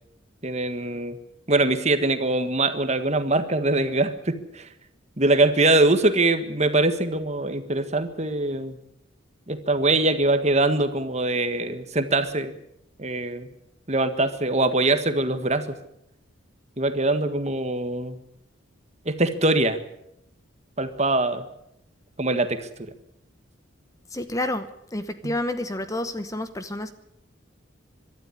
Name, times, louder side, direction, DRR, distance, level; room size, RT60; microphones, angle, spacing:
voice 1, 0.4-1.2 1.5-4.7 5.2-8.8 9.5-12.5 13.0-13.5 13.9-15.6 16.8-18.2 19.0-19.8 20.8-21.5 22.2-22.9 25.2-25.3, right 2 dB, 35° right, 9 dB, 1.6 m, -23 dB
voice 2, 24.1-26.9, left 1 dB, 15° left, 10 dB, 0.9 m, -29 dB
23.5 x 12.5 x 9.9 m, 0.79 s
head